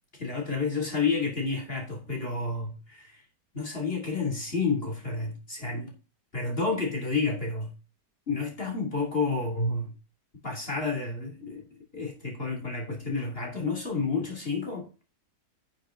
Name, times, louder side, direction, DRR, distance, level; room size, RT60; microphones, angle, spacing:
voice 1, 0.2-3.2 3.5-5.9 6.3-7.7 8.3-9.9 10.4-11.6 11.9-14.9, left 4 dB, 35° left, 3.2 m, -30 dB
11.0 x 6.8 x 3.8 m
omnidirectional pair, 1.9 m